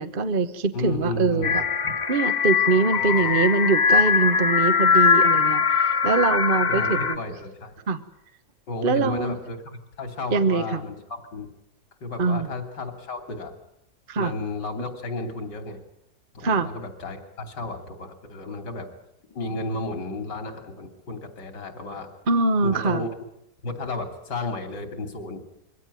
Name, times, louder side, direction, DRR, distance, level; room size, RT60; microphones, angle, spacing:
voice 1, 0.0-1.6 2.1-7.2 7.9-8.0 8.8-9.4 10.3-10.8 12.2-12.5 14.1-14.3 16.4-16.7 22.3-23.0, right 4 dB, 35° right, 10 dB, 1.0 m, -23 dB
voice 2, 0.7-1.6 1.8-1.9 3.0-3.4 6.7-7.7 8.7-11.5 12.0-13.6 14.2-15.8 16.3-18.9 19.3-22.1 22.6-23.2 23.6-25.4, left 2 dB, 70° left, 6 dB, 3.6 m, -33 dB
sound 1, 1.4-7.2, left 6 dB, 30° left, 0.9 m, -21 dB
23.5 x 17.0 x 9.7 m, 0.81 s
omnidirectional pair, 1.9 m